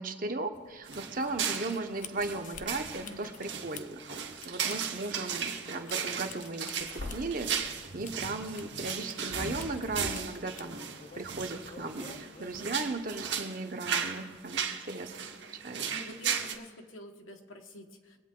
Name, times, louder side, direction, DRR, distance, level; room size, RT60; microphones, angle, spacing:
voice 1, 0.0-10.8 11.1-15.1 15.5-15.9, right 2 dB, 45° right, 5 dB, 0.9 m, -37 dB
sound 1, 0.5-13.4, left 4 dB, 40° left, 0.5 m, -47 dB
sound 2, 0.9-16.5, right 7 dB, 60° right, 1.2 m, -36 dB
voice 2, 3.0-3.4 15.9-18.2, left 1 dB, 85° left, 3 dB, 1.4 m, -48 dB
22.5 x 8.5 x 3.8 m, 1.5 s
head